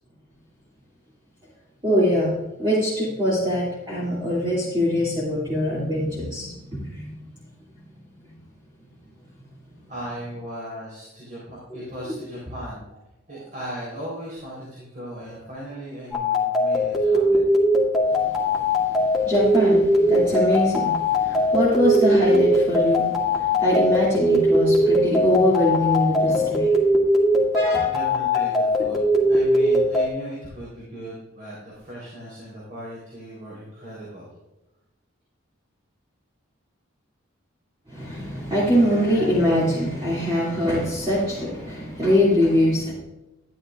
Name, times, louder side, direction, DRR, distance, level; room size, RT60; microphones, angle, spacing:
voice 1, 1.8-7.1 12.1-12.2 18.1-26.7 27.5-27.9 37.9-42.9, equal, 20° right, -8 dB, 2.5 m, -23 dB
voice 2, 9.9-12.8 13.3-17.5 27.8-34.3, equal, 40° right, -6 dB, 3.7 m, -37 dB
sound 1, 16.1-30.1, left 1 dB, ahead, 2.0 m, -20 dB
13.5 x 10.5 x 2.5 m, 0.97 s
head